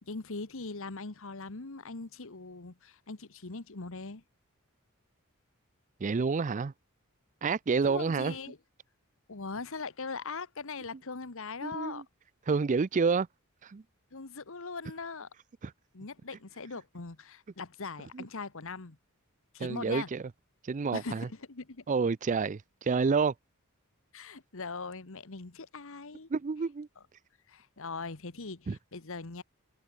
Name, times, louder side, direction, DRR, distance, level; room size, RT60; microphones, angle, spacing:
voice 1, 0.0-4.2 7.8-8.6 9.3-12.0 14.1-15.3 15.9-19.0 19.5-20.1 20.9-21.8 24.1-26.3 27.5-29.4, left 4 dB, 65° left, 1.3 m, -41 dB
voice 2, 6.0-6.7 7.4-8.3 11.6-12.0 12.5-13.3 13.6-13.8 15.6-15.7 18.1-18.2 19.6-20.3 20.6-21.3 21.9-23.3 26.3-26.9 28.7-28.8, right 5 dB, 35° right, 0.4 m, -29 dB
head